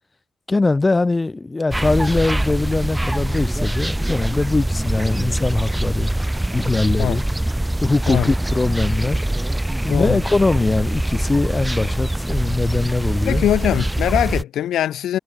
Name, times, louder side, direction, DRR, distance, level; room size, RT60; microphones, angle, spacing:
voice 1, 0.5-6.1 6.5-7.2 7.8-9.2 9.8-13.5, left 3 dB, 30° left, 3.8 m, -21 dB
sound 1, 1.7-14.4, right 1 dB, 10° right, 1.1 m, -23 dB
voice 2, 9.9-10.2 13.2-15.2, left 11 dB, 90° left, 3.3 m, -21 dB
cardioid pair, 60°, 0 cm